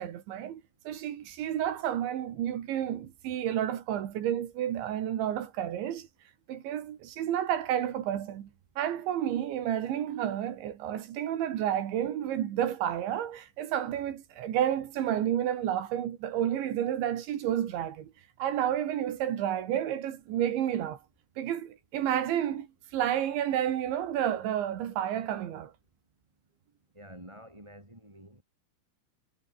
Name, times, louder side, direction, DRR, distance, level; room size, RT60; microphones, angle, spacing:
voice 1, 0.0-6.1 6.5-8.5 8.8-18.1 18.4-21.0 21.4-22.7 22.9-25.7, right 10 dB, 70° right, 4.3 m, -30 dB
voice 2, 26.9-28.4, equal, 5° right, 4.1 m, -49 dB
omnidirectional pair, 5.8 m